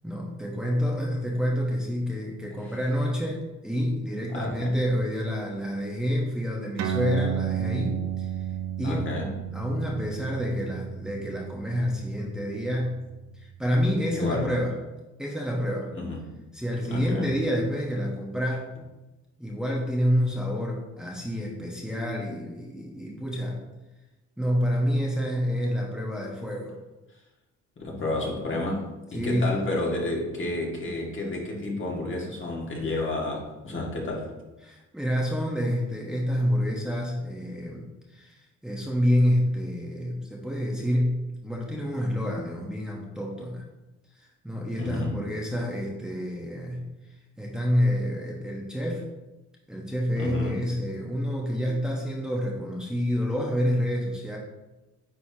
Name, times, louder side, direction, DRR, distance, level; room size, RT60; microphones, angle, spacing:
voice 1, 0.0-8.5 8.8-9.1 9.5-13.0 13.3-14.8 15.2-15.9 16.5-18.7 19.4-23.6 24.4-26.8 29.1-29.6 34.6-43.6 44.1-49.0 49.7-54.4, equal, ahead, -3 dB, 1.1 m, -28 dB
voice 2, 4.3-4.7 8.8-9.3 14.1-14.5 15.9-16.2 16.9-17.3 27.8-34.3 44.8-45.2 50.2-50.6, left 2 dB, 40° left, -2 dB, 1.9 m, -31 dB
sound 1, 6.8-13.7, right 10 dB, 65° right, 0.7 m, -33 dB
9.4 x 4.2 x 2.9 m, 1.1 s
cardioid pair, 90°, 30 cm